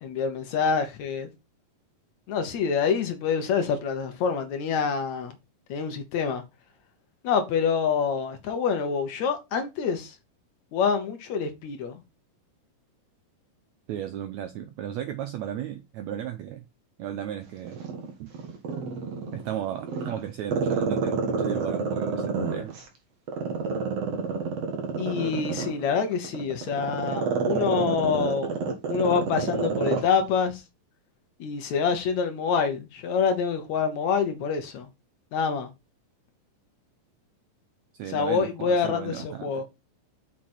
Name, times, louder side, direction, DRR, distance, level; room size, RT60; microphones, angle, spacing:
voice 1, 0.0-1.3 2.3-5.4 5.7-6.4 7.2-10.2 10.7-12.0 25.0-28.6 28.9-30.6 31.4-34.9 35.3-35.7 38.1-39.6, left 6 dB, 65° left, 2.1 m, -26 dB
voice 2, 13.9-16.6 17.0-17.8 18.2-18.3 19.3-22.8 37.9-39.6, right 10 dB, 85° right, 1.6 m, -35 dB
Growling, 17.7-19.4 19.8-22.8 23.3-30.1 30.4-30.5, right 5 dB, 50° right, 2.7 m, -28 dB
6.4 x 5.9 x 4.3 m
omnidirectional pair, 3.9 m